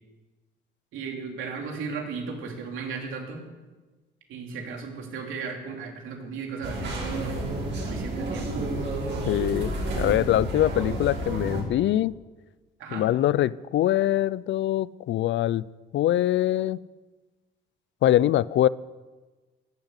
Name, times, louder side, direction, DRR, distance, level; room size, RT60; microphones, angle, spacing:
voice 1, 0.9-3.5 4.3-7.4 7.7-8.6 12.8-13.1, right 5 dB, 80° right, 1 dB, 3.1 m, -36 dB
sound 1, 6.6-11.6, right 2 dB, 65° right, 5.7 m, -30 dB
voice 2, 9.3-12.2 12.9-15.7 15.9-16.8 18.0-18.7, left 13 dB, 70° left, 20 dB, 0.5 m, -23 dB
14.0 x 10.5 x 8.2 m, 1.3 s
cardioid pair, 90°, 20 cm